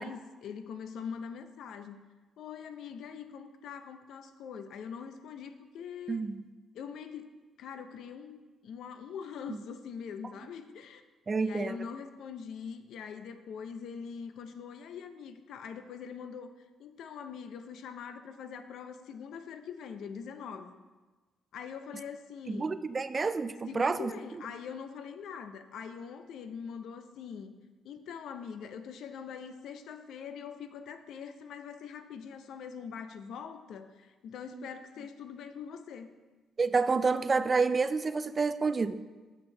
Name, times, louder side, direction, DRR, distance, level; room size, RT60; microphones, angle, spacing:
voice 1, 0.0-2.0 2.4-6.2 6.7-7.3 7.6-8.4 8.6-11.0 11.4-16.5 16.8-20.8 21.5-22.8 23.7-27.5 27.8-36.1, left 7 dB, 75° left, 0.5 m, -43 dB
voice 2, 6.1-6.4 9.5-9.6 11.3-11.8 22.5-24.1 34.5-34.7 36.6-39.0, right 4 dB, 30° right, 0.3 m, -29 dB
6.7 x 6.1 x 4.4 m
cardioid pair, 90°, 0 cm